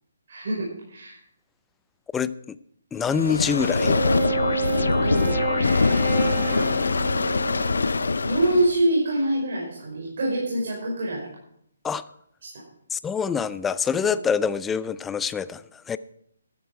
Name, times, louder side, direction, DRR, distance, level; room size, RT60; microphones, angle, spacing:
voice 1, 0.3-1.2 4.8-5.4 6.0-6.7 8.2-11.3 12.4-12.5, right 1 dB, 55° right, -4 dB, 5.3 m, -25 dB
voice 2, 2.1-2.6 2.9-4.0 11.8-12.0 12.9-16.0, left 6 dB, 10° left, 15 dB, 0.4 m, -26 dB
sound 1, 3.0-8.8, left 4 dB, 80° left, 0.5 m, -23 dB
Wind instrument woodwind instrument, 3.7-8.2, right 5 dB, 20° right, 4.6 m, -30 dB
13.5 x 12.0 x 4.8 m, 0.71 s
hypercardioid pair, 150°, 0 cm